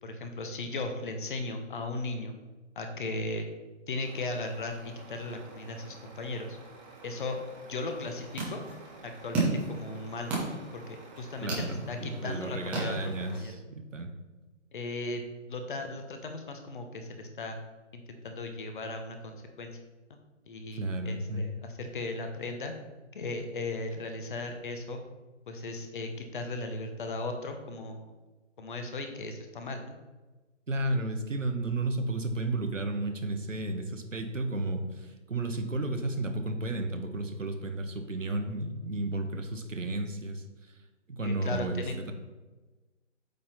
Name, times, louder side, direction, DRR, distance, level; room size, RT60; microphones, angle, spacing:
voice 1, 0.0-2.3 2.8-3.5 3.9-6.6 7.0-7.4 7.7-8.6 9.0-13.6 14.7-15.2 15.5-17.6 17.9-19.7 20.1-20.2 20.5-22.7 23.1-25.0 25.5-28.1 28.6-29.9 41.2-42.0, left 2 dB, 40° left, 5 dB, 1.0 m, -37 dB
Truck, 4.0-13.4, right 3 dB, 35° right, 1.5 m, -51 dB
sound 1, 7.9-13.5, right 3 dB, 5° right, 0.6 m, -35 dB
voice 2, 11.4-14.1 20.7-21.5 30.7-40.4 41.1-42.1, right 2 dB, 85° right, 5 dB, 1.2 m, -33 dB
8.4 x 4.4 x 4.1 m, 1.2 s
figure-of-eight pair, 145°, 37 cm